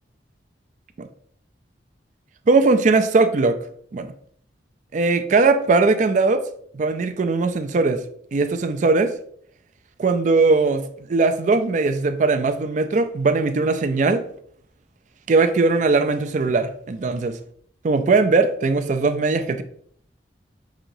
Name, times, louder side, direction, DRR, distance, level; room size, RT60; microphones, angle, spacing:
voice 1, 2.5-3.6 3.9-4.1 4.9-6.4 6.7-8.0 8.3-9.1 10.0-14.3 15.3-17.4 17.8-19.6, right 3 dB, 40° right, 10 dB, 0.3 m, -19 dB
6.0 x 2.9 x 2.6 m, 0.63 s
head